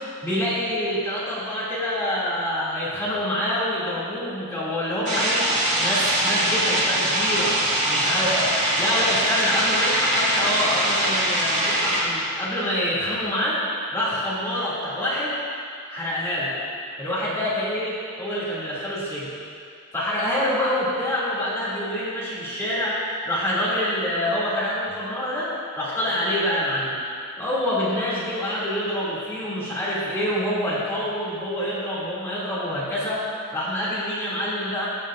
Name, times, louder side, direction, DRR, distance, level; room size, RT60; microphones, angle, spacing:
voice 1, 0.2-7.6 7.8-13.6 13.9-15.3 15.9-16.5 17.0-19.3 19.9-27.0 27.4-33.2 33.5-34.9, left 1 dB, 10° left, -10 dB, 2.6 m, -26 dB
sound 1, 5.1-12.0, right 1 dB, 30° right, 2.6 m, -22 dB
16.0 x 10.0 x 2.6 m, 2.3 s
head